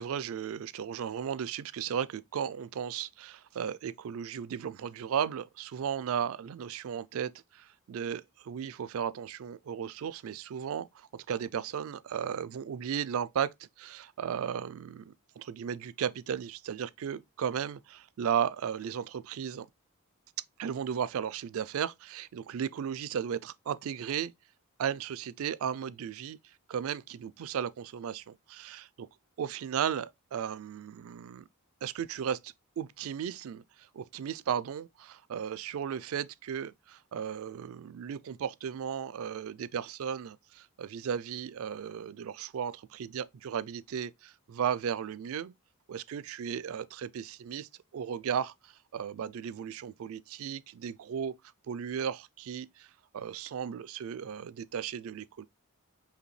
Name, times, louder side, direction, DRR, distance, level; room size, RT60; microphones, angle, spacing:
voice 1, 0.0-19.7 20.6-24.3 24.8-26.4 26.7-29.1 29.4-31.4 31.8-45.5 45.9-51.3 51.7-52.9 53.1-55.5, right 8 dB, 65° right, 0.3 m, -35 dB
5.0 x 2.7 x 3.1 m
head